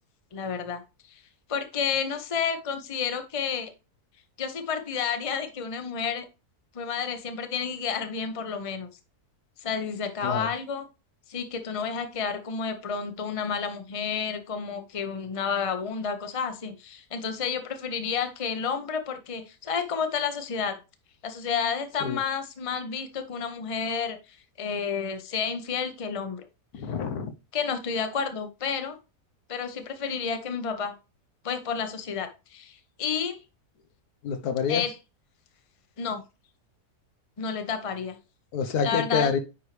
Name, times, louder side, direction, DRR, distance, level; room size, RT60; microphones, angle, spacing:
voice 1, 0.3-0.8 1.1-1.2 1.5-3.7 4.4-6.3 6.7-8.9 9.6-10.9 11.3-20.8 21.2-24.2 24.6-26.5 27.5-29.0 29.5-30.9 31.4-33.4 34.7-34.9 36.0-36.2 37.4-38.2 38.8-39.3, left 6 dB, 25° left, 7 dB, 0.8 m, -30 dB
voice 2, 26.7-27.3 34.2-34.8 38.5-39.4, left 6 dB, 80° left, 8 dB, 1.4 m, -27 dB
9.6 x 4.7 x 3.3 m, 0.28 s
omnidirectional pair, 1.6 m